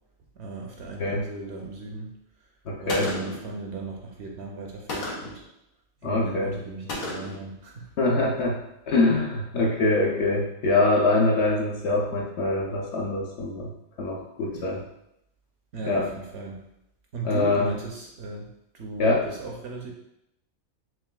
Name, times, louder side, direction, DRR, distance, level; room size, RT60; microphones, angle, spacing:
voice 1, 0.4-2.1 2.8-5.4 6.0-7.9 14.4-14.8 15.7-16.6 17.1-18.5 18.7-19.9, right 3 dB, 65° right, 0 dB, 0.7 m, -37 dB
voice 2, 2.7-3.1 6.0-6.5 8.0-8.6 8.9-13.7 14.0-14.8 15.8-16.1 17.2-17.7 19.0-19.2, left 2 dB, 65° left, -1 dB, 0.8 m, -24 dB
Gunshot gunfire, 2.9-3.5 4.9-5.4 6.9-7.5, left 2 dB, 85° left, 1.3 m, -32 dB
6.0 x 2.5 x 2.2 m, 0.82 s
omnidirectional pair, 1.4 m